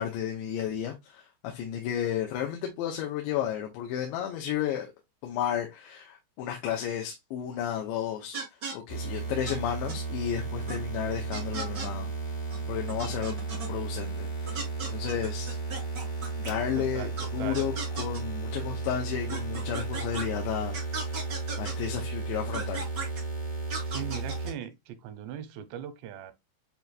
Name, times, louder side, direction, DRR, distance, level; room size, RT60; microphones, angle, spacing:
voice 1, 0.0-4.9 5.2-12.1 12.7-13.4 13.7-14.6 14.9-15.6 16.4-22.9, left 10 dB, 90° left, 3.1 m, -33 dB
sound 1, 8.3-8.7 9.5-9.6 9.9-10.0 10.7-10.8 11.3-11.9 12.5-12.6 12.9-13.7 14.5-16.5 17.2-17.3 17.5-18.2 19.3-20.2 20.7-21.7 22.5-23.2 23.7-24.5, right 4 dB, 65° right, 1.0 m, -36 dB
sound 2, 8.9-24.5, right 3 dB, 60° left, 0.7 m, -34 dB
voice 2, 16.8-17.7 23.9-26.3, right 10 dB, 85° right, 2.8 m, -39 dB
7.8 x 2.7 x 2.4 m
omnidirectional pair, 5.0 m